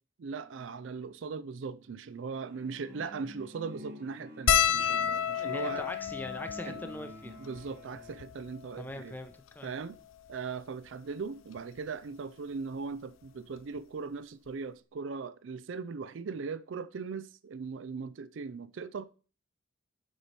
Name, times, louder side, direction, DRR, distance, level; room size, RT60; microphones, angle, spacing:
voice 1, 0.2-5.9 6.7-6.8 7.4-9.2 9.6-10.0 10.3-19.1, right 5 dB, 65° right, 0.4 m, -39 dB
sound 1, 2.5-8.3, equal, 45° right, 1.5 m, -49 dB
sound 2, 4.5-9.1 9.8-9.9 10.1-10.3 11.6-11.8 13.2-13.3 13.6-13.8, left 9 dB, 80° left, 0.5 m, -31 dB
voice 2, 5.3-7.4 8.8-9.7, left 1 dB, 10° left, 0.6 m, -42 dB
8.1 x 4.2 x 4.5 m
head